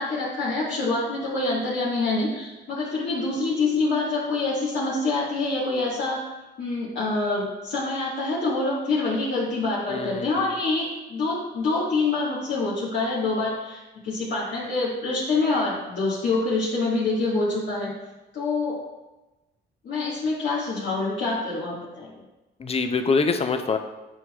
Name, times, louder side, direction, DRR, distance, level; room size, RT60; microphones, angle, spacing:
voice 1, 0.0-6.3 6.6-17.9 18.3-18.8 19.8-22.1, left 3 dB, 65° left, -8 dB, 1.5 m, -26 dB
voice 2, 9.9-10.3 22.6-23.8, left 4 dB, 30° left, 7 dB, 0.5 m, -24 dB
8.5 x 4.7 x 2.3 m, 1.1 s
cardioid pair, 90°, 20 cm